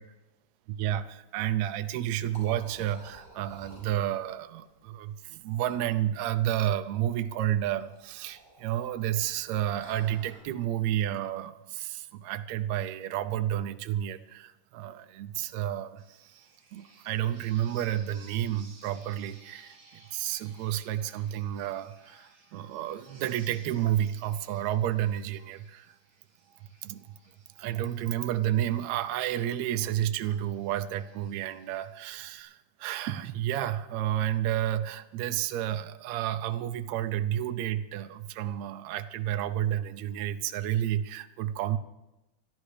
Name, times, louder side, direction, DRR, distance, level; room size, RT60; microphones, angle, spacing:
voice 1, 0.7-26.0 26.8-27.1 27.6-41.8, right 12 dB, 75° right, 10 dB, 1.8 m, -31 dB
Liquid, 1.8-10.4, right 1 dB, 25° right, 6.9 m, -54 dB
sound 1, 16.0-32.4, right 2 dB, 45° right, 4.6 m, -59 dB
28.5 x 12.5 x 3.3 m, 1.0 s
omnidirectional pair, 3.6 m